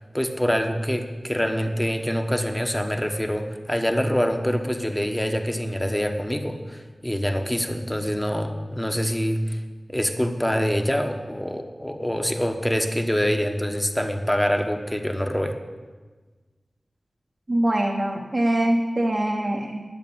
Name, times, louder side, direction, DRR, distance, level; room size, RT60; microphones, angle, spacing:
voice 1, 0.1-9.6 9.9-15.6, equal, 10° left, 5 dB, 1.2 m, -25 dB
voice 2, 17.5-19.8, right 1 dB, 45° right, -1 dB, 1.3 m, -23 dB
11.0 x 8.5 x 7.2 m, 1.4 s
wide cardioid pair, 60°, 0 cm